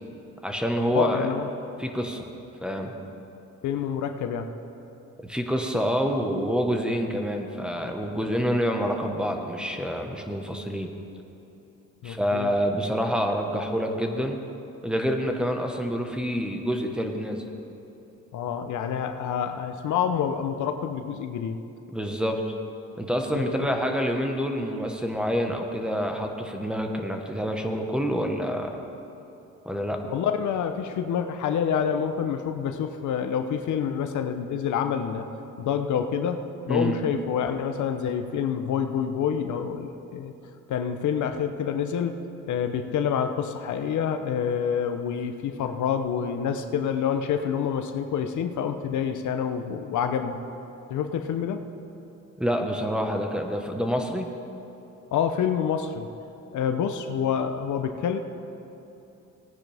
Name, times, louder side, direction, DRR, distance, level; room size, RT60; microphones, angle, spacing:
voice 1, 0.4-1.3 1.8-2.3 2.6-2.9 5.2-10.9 12.0-14.4 14.8-17.4 21.9-22.5 23.0-28.8 29.6-30.0 36.7-37.0 52.4-54.3, equal, 5° right, 3 dB, 1.3 m, -27 dB
voice 2, 0.9-1.5 3.6-4.5 12.0-12.5 18.3-21.6 23.5-23.7 30.1-35.3 35.6-40.3 40.7-50.4 50.9-51.7 55.1-56.1 56.5-58.2, left 7 dB, 75° left, 7 dB, 0.8 m, -27 dB
18.5 x 9.6 x 3.5 m, 3.0 s
cardioid pair, 90°, 30 cm